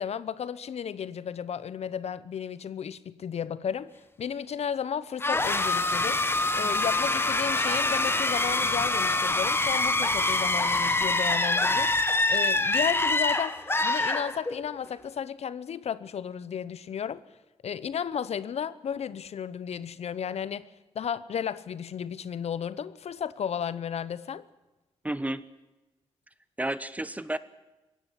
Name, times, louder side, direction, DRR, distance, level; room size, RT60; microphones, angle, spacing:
voice 1, 0.0-3.9 4.2-6.2 6.5-11.9 12.3-17.2 17.6-20.7 20.9-24.4, left 8 dB, 65° left, 0.9 m, -33 dB
sound 1, 5.2-14.8, left 2 dB, 20° left, 1.5 m, -25 dB
voice 2, 25.0-25.4 26.6-27.4, right 1 dB, 15° right, 1.1 m, -31 dB
21.5 x 16.5 x 10.0 m
cardioid pair, 90°, 12 cm